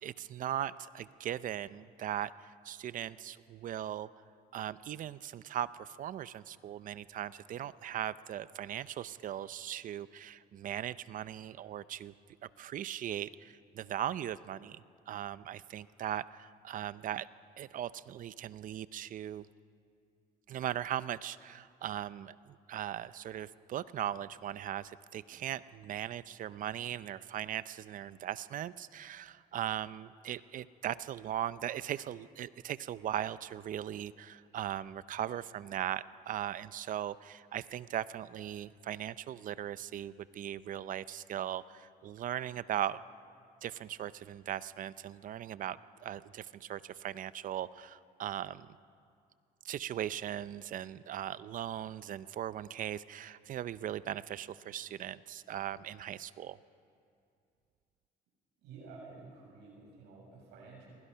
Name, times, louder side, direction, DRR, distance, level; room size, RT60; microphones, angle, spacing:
voice 1, 0.0-4.1 4.5-12.1 12.6-17.3 17.6-19.5 20.5-43.0 43.6-48.7 49.6-56.6, right 11 dB, 50° right, 16 dB, 0.6 m, -39 dB
voice 2, 58.6-60.9, right 4 dB, 90° right, -3 dB, 7.5 m, -51 dB
28.5 x 22.0 x 5.7 m, 2.4 s
cardioid pair, 110°, 17 cm